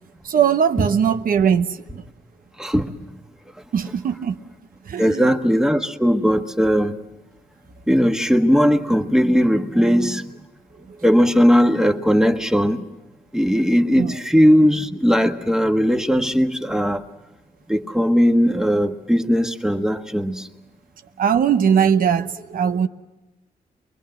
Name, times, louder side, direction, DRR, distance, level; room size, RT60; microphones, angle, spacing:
voice 1, 0.2-2.0 3.7-4.4 4.8-5.3 10.9-11.0 14.0-14.2 21.2-22.9, right 7 dB, 65° right, 1.0 m, -20 dB
voice 2, 2.6-3.2 5.0-7.0 7.9-10.2 11.0-12.9 13.3-17.0 17.7-20.5, equal, 5° right, 1.4 m, -18 dB
24.0 x 22.0 x 7.6 m
cardioid pair, 80°, 16 cm